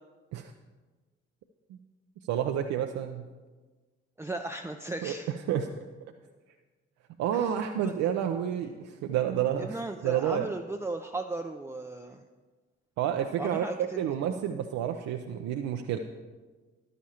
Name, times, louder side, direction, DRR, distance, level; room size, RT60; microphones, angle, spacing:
voice 1, 2.3-3.2 5.0-5.7 7.2-10.5 13.0-16.0, right 9 dB, 60° right, 5 dB, 0.6 m, -30 dB
voice 2, 4.2-5.3 7.3-7.9 9.6-12.2 13.4-14.0, right 2 dB, 10° right, 4 dB, 0.6 m, -36 dB
13.5 x 11.0 x 2.9 m, 1.3 s
figure-of-eight pair, 40°, 31 cm